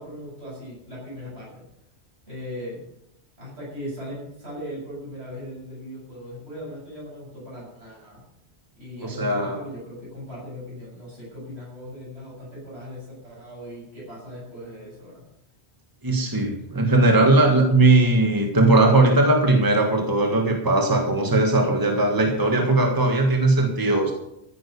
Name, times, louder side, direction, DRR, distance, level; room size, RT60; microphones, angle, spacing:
voice 1, 0.0-1.6 2.3-2.8 3.4-8.2 8.8-15.3, equal, 75° right, -6 dB, 7.6 m, -38 dB
voice 2, 9.0-9.6 16.0-24.1, right 2 dB, 20° right, 3 dB, 1.6 m, -19 dB
14.5 x 8.9 x 6.9 m, 0.81 s
omnidirectional pair, 1.1 m